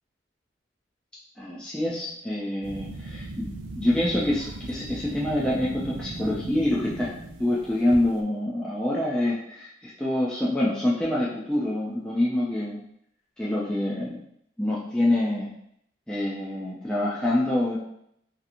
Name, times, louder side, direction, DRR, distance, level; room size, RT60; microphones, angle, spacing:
voice 1, 1.4-7.1 7.4-12.8 13.4-14.2 14.6-15.5 16.1-17.8, left 1 dB, 5° left, -8 dB, 0.4 m, -26 dB
sound 1, 2.6-8.2, right 2 dB, 80° right, 0.4 m, -38 dB
2.8 x 2.5 x 2.5 m, 0.72 s
head